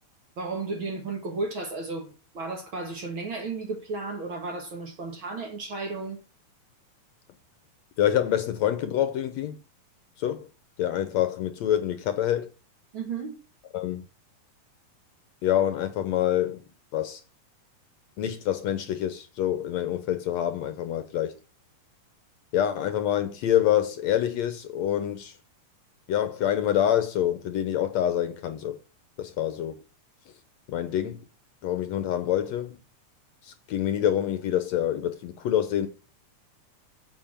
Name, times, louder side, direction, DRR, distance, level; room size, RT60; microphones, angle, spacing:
voice 1, 0.4-6.2 12.9-13.4, right 3 dB, 45° right, 2.0 m, -33 dB
voice 2, 8.0-9.6 10.2-10.5 10.8-12.5 13.7-14.1 15.4-16.6 16.9-17.2 18.2-21.3 22.5-25.3 26.1-28.8 29.2-29.8 30.7-31.2 31.6-32.8 33.4-35.9, left 11 dB, 65° left, 2.0 m, -26 dB
8.0 x 7.3 x 7.4 m
omnidirectional pair, 3.7 m